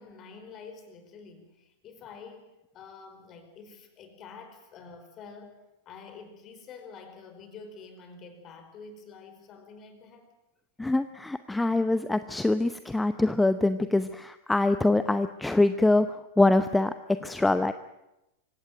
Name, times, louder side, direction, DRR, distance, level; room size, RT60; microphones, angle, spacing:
voice 1, 0.0-10.3, left 5 dB, 35° left, 8 dB, 4.8 m, -48 dB
voice 2, 10.8-16.9 17.2-17.7, left 2 dB, 5° left, 12 dB, 0.8 m, -24 dB
25.0 x 17.5 x 9.2 m, 0.92 s
figure-of-eight pair, 95°, 0 cm